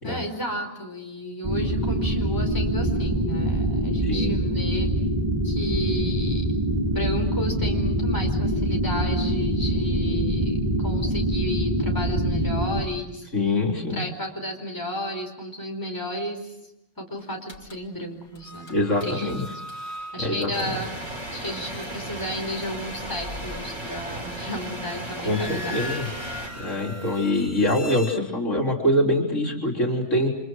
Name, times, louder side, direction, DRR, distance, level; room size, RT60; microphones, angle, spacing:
voice 1, 0.0-4.9 5.4-6.4 6.8-13.3 13.7-16.5 17.0-18.7 19.0-19.3 20.1-20.9 21.3-25.9, equal, 15° left, 2 dB, 4.7 m, -33 dB
sound 1, 1.4-12.8, right 1 dB, 30° right, 3.9 m, -24 dB
voice 2, 4.0-4.4 13.3-14.0 18.7-19.4 20.2-20.8 25.2-26.1 26.6-30.3, left 1 dB, 75° left, 0 dB, 4.2 m, -24 dB
sound 2, 17.5-17.9 18.3-24.7 25.1-28.2, left 1 dB, 60° left, 3.3 m, -40 dB
sound 3, 20.5-26.5, right 1 dB, 70° right, 5.4 m, -35 dB
30.0 x 26.5 x 6.3 m, 0.85 s
omnidirectional pair, 1.3 m